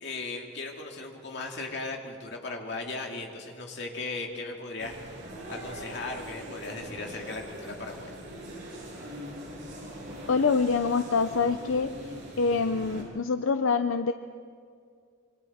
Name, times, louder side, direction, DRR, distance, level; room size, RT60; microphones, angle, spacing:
voice 1, 0.0-5.0 5.5-8.1, left 3 dB, 55° left, 1 dB, 2.4 m, -37 dB
sound 1, 4.8-13.0, equal, 60° right, 6.7 m, -42 dB
voice 2, 10.3-11.9 12.4-14.1, left 4 dB, 80° left, 9 dB, 0.6 m, -25 dB
26.5 x 24.5 x 4.3 m, 2.2 s
head